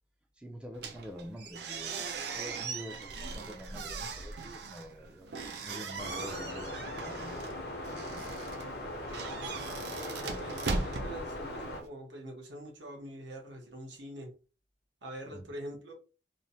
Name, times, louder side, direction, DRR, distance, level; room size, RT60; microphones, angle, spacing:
voice 1, 0.4-5.3 5.6-8.4 15.3-15.4, equal, 5° right, 0.3 m, -47 dB
sound 1, 0.7-11.9, right 4 dB, 70° right, 0.5 m, -39 dB
sound 2, 6.0-11.8, left 1 dB, 60° left, 0.7 m, -40 dB
voice 2, 9.9-14.3 15.0-15.9, equal, 85° right, 0.9 m, -44 dB
3.0 x 2.0 x 2.7 m
head